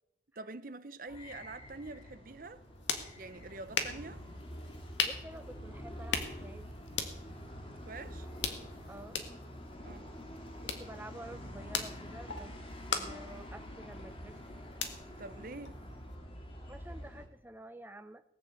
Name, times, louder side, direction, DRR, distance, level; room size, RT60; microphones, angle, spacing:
voice 1, 0.4-2.6 3.2-4.2 7.9-8.3 9.8-10.1 15.1-15.8, right 3 dB, 45° right, 0.7 m, -46 dB
sound 1, 1.1-17.3, equal, 30° left, 2.1 m, -47 dB
sound 2, 2.4-16.2, left 6 dB, 80° left, 1.7 m, -41 dB
voice 2, 5.0-6.7 8.9-9.2 10.6-12.5 12.9-14.3 16.7-18.2, right 1 dB, 10° right, 0.7 m, -49 dB
18.5 x 6.8 x 8.3 m
head